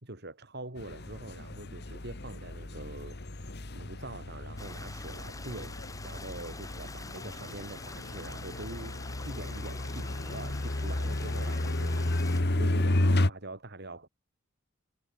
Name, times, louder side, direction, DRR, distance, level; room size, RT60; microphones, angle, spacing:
voice 1, 0.0-3.2 3.7-12.0 12.5-14.1, right 2 dB, 55° right, 3.8 m, -44 dB
sound 1, 0.8-13.3, left 1 dB, 55° left, 1.7 m, -32 dB
Stream, 4.6-12.4, left 3 dB, 15° left, 6.6 m, -46 dB
head